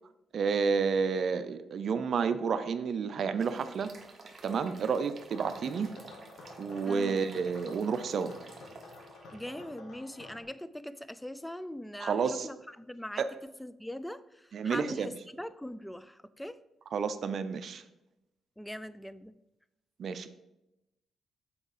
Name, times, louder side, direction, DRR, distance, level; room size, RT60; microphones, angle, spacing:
voice 1, 0.3-3.9 4.4-5.9 6.6-8.3 12.0-12.5 13.2-13.3 14.5-15.1 16.9-17.8 20.0-20.3, right 5 dB, 60° right, 11 dB, 0.6 m, -30 dB
sound 1, 3.4-9.5, right 3 dB, 40° right, 1.2 m, -52 dB
sound 2, 5.3-10.4, left 2 dB, 75° left, 1.6 m, -50 dB
voice 2, 6.8-7.2 9.3-13.3 13.6-15.1 15.4-16.6 18.6-19.3, left 1 dB, 5° left, 15 dB, 0.4 m, -41 dB
7.2 x 4.5 x 5.0 m, 0.92 s
cardioid pair, 85°, 0 cm